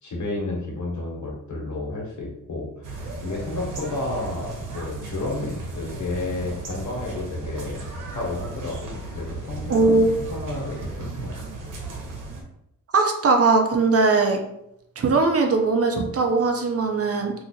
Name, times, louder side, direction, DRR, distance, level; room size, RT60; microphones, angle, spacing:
voice 1, 0.0-7.8 8.1-10.0 10.3-11.3, left 2 dB, 65° left, -2 dB, 1.3 m, -31 dB
sound 1, 2.8-12.4, right 2 dB, 70° right, 1.0 m, -35 dB
voice 2, 9.7-10.1 12.9-14.4 15.0-17.3, right 3 dB, 45° right, 4 dB, 0.6 m, -20 dB
2.8 x 2.4 x 4.2 m, 0.80 s
cardioid pair, 80°, 32 cm